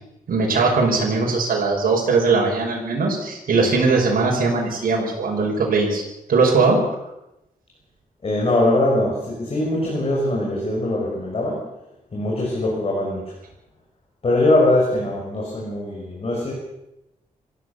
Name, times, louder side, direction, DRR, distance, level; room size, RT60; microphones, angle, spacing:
voice 1, 0.3-6.0 6.3-6.8, right 4 dB, 90° right, -1 dB, 5.9 m, -20 dB
voice 2, 8.2-11.7 12.1-13.3 14.2-16.5, left 1 dB, 40° left, -2 dB, 6.3 m, -21 dB
25.5 x 16.0 x 6.9 m, 0.89 s
wide cardioid pair, 130°, 14 cm